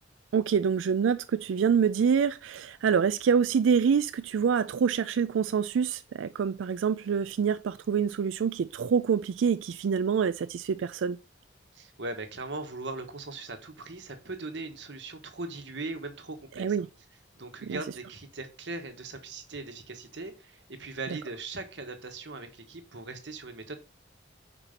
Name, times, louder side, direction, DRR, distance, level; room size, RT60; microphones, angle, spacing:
voice 1, 0.3-11.2 16.6-16.9 17.6-17.8, right 6 dB, 85° right, 0.3 m, -26 dB
voice 2, 11.7-16.9 17.3-23.8, right 3 dB, 65° right, 1.3 m, -39 dB
5.8 x 4.4 x 5.1 m
head